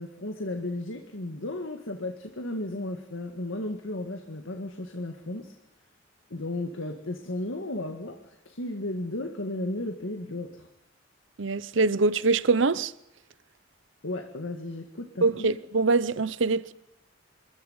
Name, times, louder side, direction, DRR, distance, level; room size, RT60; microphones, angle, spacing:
voice 1, 0.0-5.6 6.3-10.7 14.0-15.5, left 1 dB, 90° left, 1.9 m, -34 dB
voice 2, 11.4-12.9 15.2-16.7, right 3 dB, 70° right, 0.8 m, -24 dB
26.5 x 14.0 x 9.6 m
head